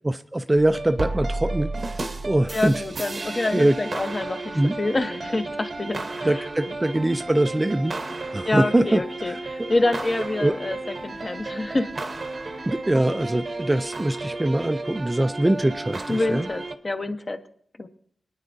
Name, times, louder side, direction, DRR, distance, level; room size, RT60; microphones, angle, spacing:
voice 1, 0.0-2.7 3.5-3.8 4.5-4.7 6.2-9.7 10.4-10.5 12.7-16.5, right 1 dB, 15° right, 9 dB, 0.4 m, -23 dB
sound 1, 0.5-16.8, right 2 dB, 45° right, 0.8 m, -33 dB
voice 2, 2.5-6.5 8.4-10.8 11.0-11.9 16.1-17.4 17.8-17.9, left 2 dB, 30° left, 6 dB, 0.9 m, -27 dB
24.5 x 9.6 x 2.6 m, 0.65 s
wide cardioid pair, 120°, 0 cm